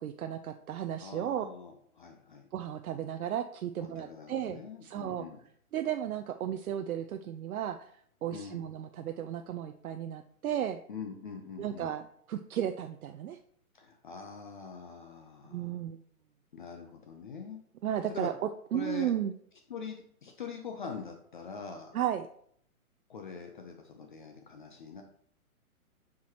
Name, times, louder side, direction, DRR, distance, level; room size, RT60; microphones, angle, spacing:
voice 1, 0.0-1.4 2.5-5.3 5.7-7.9 8.2-10.8 11.6-13.4 15.5-16.0 17.8-19.3 21.9-22.3, right 10 dB, 70° right, 8 dB, 0.6 m, -34 dB
voice 2, 1.0-2.5 3.8-5.4 8.3-8.6 10.9-11.9 13.7-15.8 16.5-17.6 18.1-18.3 18.7-19.1 19.7-22.0 23.1-25.0, left 5 dB, 35° left, 4 dB, 0.6 m, -43 dB
7.5 x 6.0 x 2.9 m, 0.64 s
hypercardioid pair, 165°, 45 cm